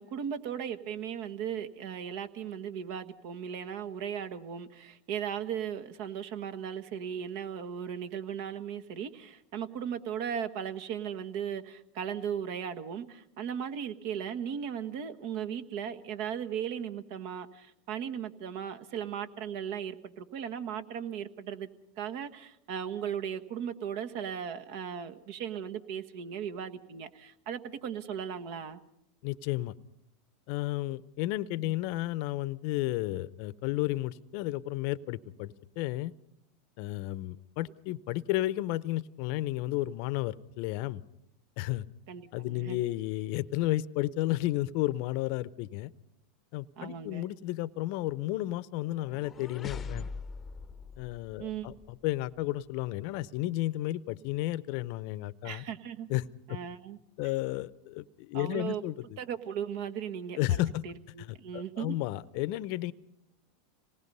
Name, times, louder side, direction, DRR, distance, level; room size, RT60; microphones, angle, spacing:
voice 1, 0.0-21.7 22.0-28.8 31.6-31.7 42.1-42.8 46.8-47.3 51.4-51.8 55.4-56.1 56.5-57.0 58.3-58.8 59.2-62.0, right 8 dB, 60° right, 9 dB, 1.4 m, -37 dB
voice 2, 29.2-29.7 30.5-36.1 36.8-41.0 41.6-41.9 42.3-45.9 46.5-50.0 51.0-55.6 56.1-56.2 56.5-56.6 57.2-58.9 60.4-60.8 61.2-62.9, left 16 dB, 60° left, 17 dB, 0.7 m, -32 dB
sound 1, 48.8-51.9, left 5 dB, 25° left, 0.7 m, -42 dB
26.5 x 19.0 x 5.5 m, 0.80 s
hypercardioid pair, 105°, 0 cm